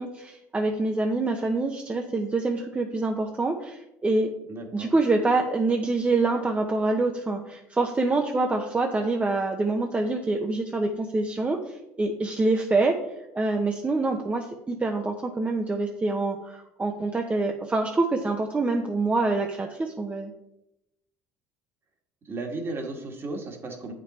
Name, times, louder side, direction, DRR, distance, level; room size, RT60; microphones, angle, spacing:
voice 1, 0.0-4.3 4.7-13.0 13.3-20.3, right 3 dB, 20° right, 2 dB, 0.9 m, -26 dB
voice 2, 4.5-4.9 22.2-23.9, right 2 dB, 40° right, 3 dB, 1.8 m, -34 dB
8.3 x 5.4 x 4.2 m, 0.86 s
supercardioid pair, 85°, 6 cm